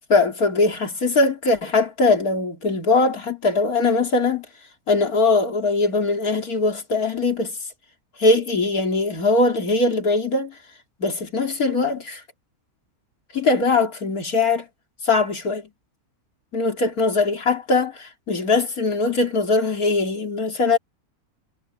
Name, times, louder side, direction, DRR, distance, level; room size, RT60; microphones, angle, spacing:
voice 1, 0.1-4.5 4.9-7.6 8.2-10.5 11.0-12.2 13.3-14.7 15.0-15.7 16.5-20.8, left 3 dB, 70° left, 3.5 m, -21 dB
omnidirectional pair, 1.6 m